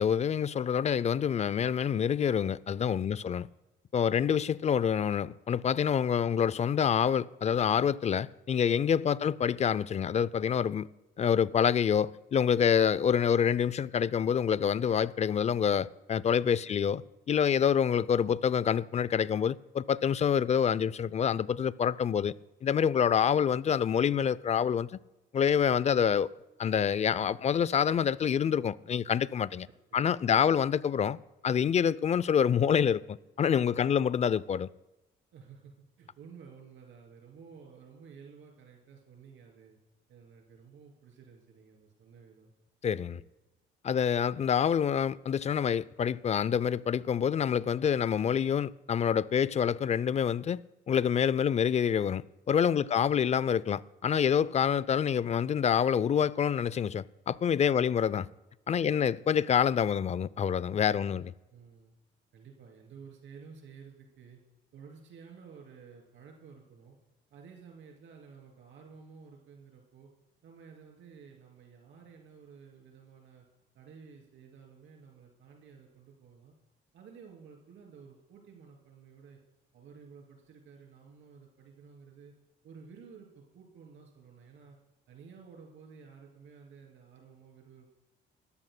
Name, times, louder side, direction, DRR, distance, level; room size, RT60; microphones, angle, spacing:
voice 1, 0.0-3.5 3.9-10.9 11.2-17.0 17.3-22.3 22.6-24.9 25.3-26.3 26.6-29.7 29.9-31.2 31.4-34.7 42.8-43.2 43.8-58.2 58.7-61.3, left 8 dB, 35° left, 0.4 m, -27 dB
voice 2, 3.1-3.5 9.1-9.4 16.6-17.0 27.1-27.6 29.6-30.6 33.7-34.1 35.3-35.7 36.0-39.8 40.1-42.5 43.1-43.3 52.7-53.2 57.7-58.1 58.8-59.2 61.0-61.2 61.5-61.9 62.3-64.4 64.7-67.0 67.3-70.1 70.4-73.5 73.7-76.5 76.9-79.4 79.7-82.3 82.6-84.8 85.1-88.0, right 6 dB, 75° right, 3.1 m, -53 dB
24.5 x 14.0 x 2.2 m
cardioid pair, 90°, 20 cm